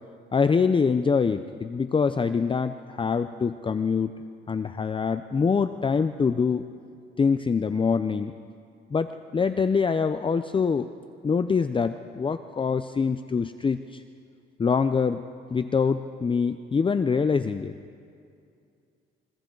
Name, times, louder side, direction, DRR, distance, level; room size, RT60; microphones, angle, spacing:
voice 1, 0.3-4.1 4.5-6.6 7.2-8.3 8.9-10.9 11.2-14.0 14.6-15.2 15.5-17.7, left 5 dB, 25° left, 11 dB, 0.6 m, -24 dB
29.5 x 23.5 x 3.9 m, 2.4 s
cardioid pair, 90°, 20 cm